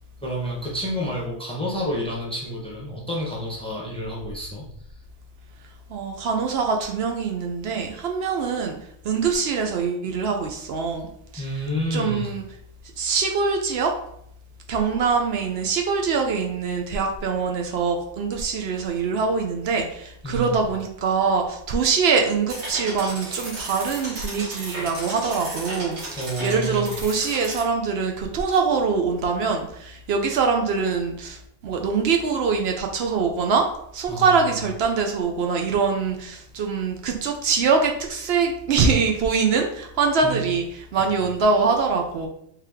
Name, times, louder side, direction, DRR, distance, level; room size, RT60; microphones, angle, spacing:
voice 1, 0.2-4.6 11.4-12.3 20.2-20.6 26.2-26.9 34.1-34.3 40.2-40.4 40.9-41.1, equal, 5° left, -4 dB, 0.8 m, -29 dB
voice 2, 5.9-11.1 11.3-11.6 11.9-12.4 13.0-14.0 14.7-42.3, right 5 dB, 70° right, 2 dB, 0.8 m, -23 dB
sound 1, 22.5-27.6, right 2 dB, 85° right, 1.3 m, -34 dB
3.3 x 2.8 x 3.5 m, 0.71 s
omnidirectional pair, 1.1 m